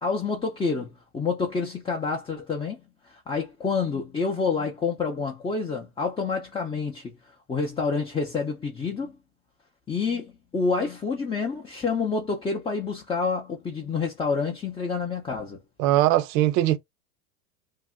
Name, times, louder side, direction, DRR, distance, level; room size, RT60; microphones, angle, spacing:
voice 1, 0.0-2.8 3.1-7.2 7.5-9.2 9.9-15.6, left 4 dB, 10° left, 0.5 m, -28 dB
voice 2, 15.8-16.8, right 14 dB, 45° right, 0.6 m, -20 dB
2.7 x 2.1 x 3.5 m
hypercardioid pair, 105°, 43 cm